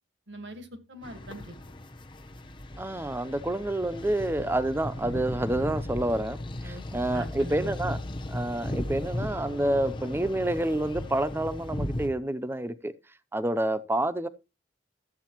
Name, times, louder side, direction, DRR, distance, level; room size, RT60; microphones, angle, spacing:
voice 1, 0.3-1.5 6.6-7.8, right 1 dB, 85° right, 1.7 m, -41 dB
sound 1, 1.0-12.1, left 1 dB, 30° left, 1.0 m, -36 dB
voice 2, 2.8-6.4 6.6-8.0 8.3-12.9 13.3-14.3, right 1 dB, 15° right, 0.6 m, -28 dB
13.0 x 8.2 x 3.0 m
head